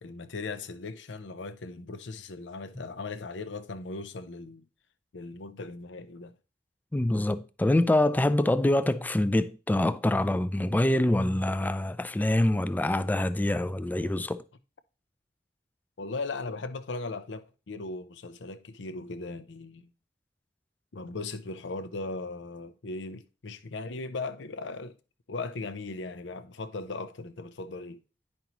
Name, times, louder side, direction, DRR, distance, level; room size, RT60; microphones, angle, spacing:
voice 1, 0.0-4.6 5.1-6.3 16.0-19.8 20.9-25.0 25.3-28.0, left 3 dB, 90° left, 0.6 m, -38 dB
voice 2, 6.9-14.4, left 1 dB, 10° left, 0.3 m, -25 dB
9.5 x 5.3 x 3.0 m
head